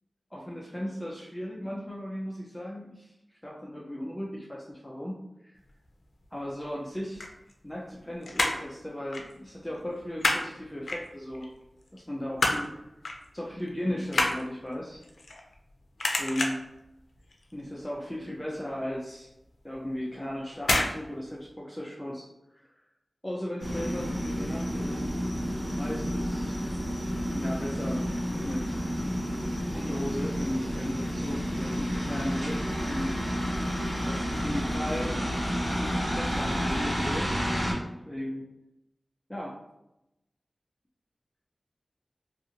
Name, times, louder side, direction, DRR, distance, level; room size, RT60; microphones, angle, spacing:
voice 1, 0.3-3.1 3.4-5.1 5.4-5.6 6.3-7.2 7.6-11.4 11.9-12.7 13.3-15.0 16.0-16.6 17.5-19.3 19.6-22.2 22.5-22.6 23.2-25.1 25.7-26.6 27.3-28.8 29.7-32.6 32.9-33.2 34.1-35.1 35.8-37.3 38.1-38.5 39.3-39.6, equal, 10° left, -4 dB, 0.5 m, -36 dB
sound 1, 7.0-8.0 8.2-8.7 9.1-9.3 9.6-10.5 10.9-11.5 11.9-12.7 13.0-13.3 13.6-15.7 16.0-16.7 17.2-17.5 17.8-17.9 18.2-18.3 18.8-18.9 19.7-20.0 20.6-21.0 21.2-21.3, left 2 dB, 85° left, 0.4 m, -28 dB
sound 2, 23.6-37.7, equal, 40° right, 1.3 m, -30 dB
2.5 x 2.5 x 2.8 m, 0.87 s
wide cardioid pair, 80°, 0 cm